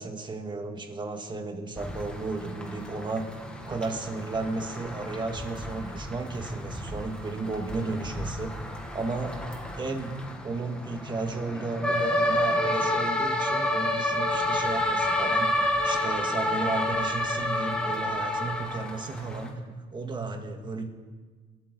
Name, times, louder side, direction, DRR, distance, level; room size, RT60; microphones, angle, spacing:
voice 1, 0.0-3.3 3.6-8.6 8.9-9.3 9.8-20.9, right 3 dB, 25° right, 5 dB, 1.9 m, -34 dB
sound 1, 1.8-19.5, left 1 dB, 5° left, 2.0 m, -30 dB
27.5 x 12.5 x 4.0 m, 1.4 s
cardioid pair, 110°, 17 cm